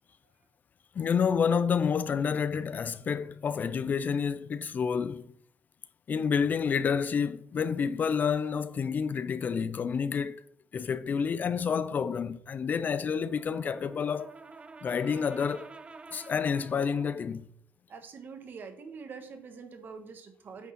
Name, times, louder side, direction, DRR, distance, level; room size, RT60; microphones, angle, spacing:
voice 1, 0.9-5.3 6.1-10.4 10.7-14.3 14.8-15.7 16.1-17.5, left 6 dB, 45° left, 0.4 m, -29 dB
Brass instrument, 13.2-17.3, right 4 dB, 25° right, 0.6 m, -49 dB
voice 2, 17.9-20.7, right 5 dB, 50° right, 1.4 m, -45 dB
9.3 x 3.6 x 5.7 m
cardioid pair, 90°, 4 cm